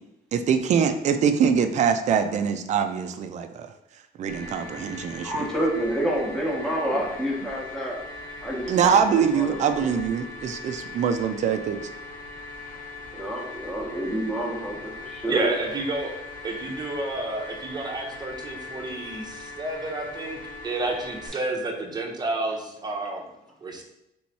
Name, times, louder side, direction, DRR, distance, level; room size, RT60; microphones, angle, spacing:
voice 1, 0.3-3.7 4.2-5.5 8.7-11.8, right 7 dB, 45° right, 8 dB, 0.4 m, -23 dB
sound 1, 4.3-21.3, left 3 dB, 55° left, 1.0 m, -40 dB
voice 2, 5.2-8.0 8.4-9.8 13.1-15.5, right 1 dB, 5° left, -4 dB, 1.0 m, -28 dB
voice 3, 15.3-16.1 16.4-23.2 23.6-23.8, right 2 dB, 25° right, 2 dB, 0.8 m, -30 dB
3.4 x 3.1 x 4.1 m, 0.86 s
cardioid pair, 110°, 17 cm